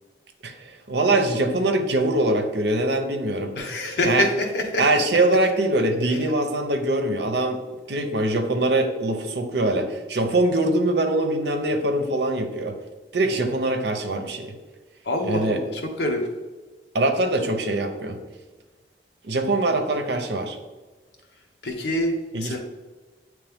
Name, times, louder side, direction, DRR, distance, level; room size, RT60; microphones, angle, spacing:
voice 1, 0.4-3.5 4.0-4.3 4.8-7.6 7.9-12.8 13.1-14.5 15.3-15.6 16.9-18.2 19.2-20.6 22.3-22.6, right 2 dB, 75° right, 5 dB, 0.7 m, -23 dB
voice 2, 3.5-4.8 6.1-6.3 15.0-16.3 21.6-22.6, left 1 dB, 75° left, 2 dB, 1.0 m, -26 dB
8.4 x 3.1 x 3.5 m, 1.3 s
head